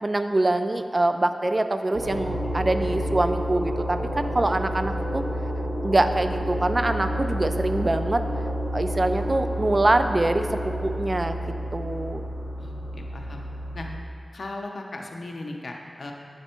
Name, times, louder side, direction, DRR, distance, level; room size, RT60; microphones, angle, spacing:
voice 1, 0.0-5.2 5.8-8.3 8.7-11.4 11.7-12.3, right 2 dB, 35° right, 8 dB, 0.3 m, -24 dB
sound 1, 1.9-14.0, equal, 70° right, 1.4 m, -30 dB
voice 2, 12.6-13.4 13.7-13.9 14.3-16.1, left 2 dB, 70° left, 1 dB, 0.6 m, -37 dB
8.0 x 3.3 x 4.3 m, 2.3 s
wide cardioid pair, 75°, 0 cm